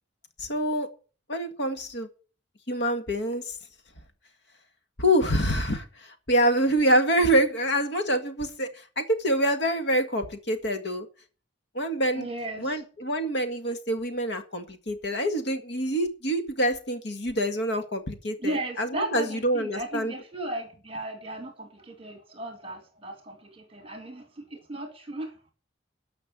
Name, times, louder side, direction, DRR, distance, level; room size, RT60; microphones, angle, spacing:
voice 1, 0.4-0.9 1.3-2.1 2.7-3.6 5.0-11.1 11.7-12.3 12.6-20.1, equal, 60° left, 8 dB, 1.8 m, -26 dB
voice 2, 12.1-12.8 18.4-25.5, right 1 dB, 30° right, 6 dB, 2.2 m, -36 dB
13.0 x 5.8 x 8.5 m, 0.38 s
head